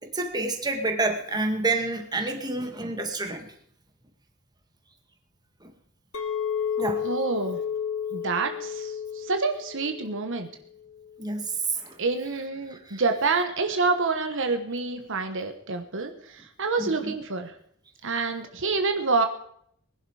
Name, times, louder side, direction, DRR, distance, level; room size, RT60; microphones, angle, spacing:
voice 1, 0.0-3.5 5.6-5.7 6.8-7.1 11.2-12.0 12.7-13.0 16.8-17.1, right 3 dB, 20° right, 5 dB, 2.0 m, -29 dB
Chink clink, 6.1-10.5 10.8-11.3, left 8 dB, 75° left, 1.7 m, -32 dB
voice 2, 7.0-7.6 8.1-10.5 12.0-17.5 18.0-19.3, right 4 dB, 65° right, 6 dB, 1.3 m, -27 dB
20.5 x 11.0 x 4.9 m, 0.66 s
head